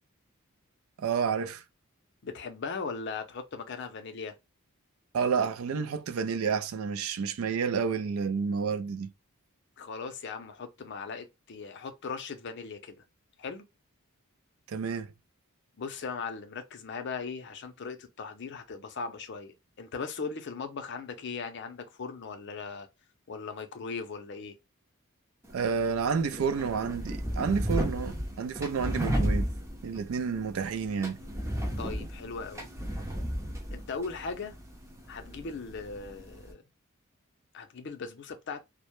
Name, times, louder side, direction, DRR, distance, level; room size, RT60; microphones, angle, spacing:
voice 1, 1.0-1.6 5.1-9.1 14.7-15.1 25.5-29.5 29.8-31.2, right 6 dB, 70° right, 0.3 m, -30 dB
voice 2, 2.2-4.4 9.8-13.0 13.4-13.6 15.8-22.9 23.3-24.5 31.8-32.7 33.7-34.5 35.1-36.6 37.5-38.6, left 4 dB, 55° left, 0.5 m, -38 dB
sound 1, 25.4-36.5, equal, 15° right, 0.6 m, -34 dB
2.1 x 2.0 x 2.9 m
head